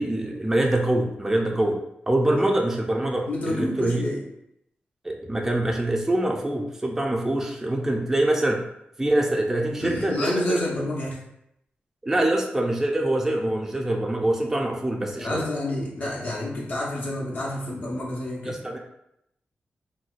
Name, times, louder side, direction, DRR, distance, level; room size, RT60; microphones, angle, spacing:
voice 1, 0.0-1.8 2.1-4.0 5.0-8.6 9.0-10.6 12.0-15.4 18.5-18.8, right 1 dB, 10° right, 0 dB, 0.3 m, -24 dB
voice 2, 3.3-4.2 9.8-11.2 15.2-18.6, left 1 dB, 50° left, -4 dB, 0.7 m, -29 dB
3.9 x 2.1 x 2.4 m, 0.78 s
wide cardioid pair, 130°, 4 cm